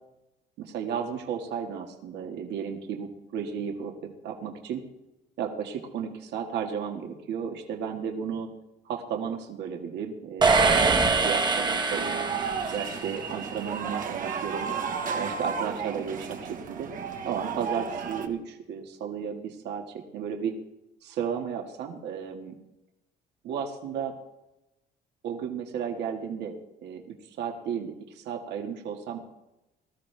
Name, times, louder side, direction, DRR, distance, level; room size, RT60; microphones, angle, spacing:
voice 1, 0.6-4.8 5.4-8.5 8.9-12.3 12.7-14.7 15.1-16.9 17.2-19.9 20.1-20.5 21.0-22.5 23.4-24.1 25.2-26.6 26.8-29.2, right 7 dB, 70° right, 2 dB, 1.9 m, -33 dB
sound 1, 10.4-13.2, right 4 dB, 25° right, 1.3 m, -24 dB
sound 2, 11.9-18.3, right 6 dB, 50° right, 1.5 m, -33 dB
20.0 x 13.5 x 3.4 m, 0.93 s
cardioid pair, 130°, 18 cm